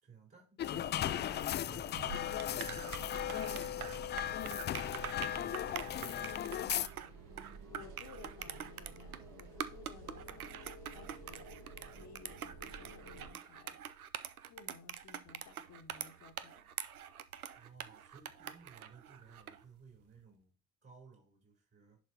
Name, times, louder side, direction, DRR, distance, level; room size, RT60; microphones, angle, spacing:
voice 1, 0.0-2.3 2.5-3.0 3.4-6.6 17.2-20.5 20.8-22.0, right 5 dB, 35° right, 4.1 m, -58 dB
sound 1, 0.6-6.9, left 11 dB, 25° left, 0.4 m, -37 dB
sound 2, 0.6-13.3, right 3 dB, 50° right, 2.3 m, -52 dB
sound 3, 1.9-19.6, right 9 dB, 90° right, 0.5 m, -45 dB
voice 2, 7.7-14.2 14.5-16.7, left 5 dB, 40° left, 1.3 m, -57 dB
10.5 x 5.5 x 2.8 m
figure-of-eight pair, 60°, 42 cm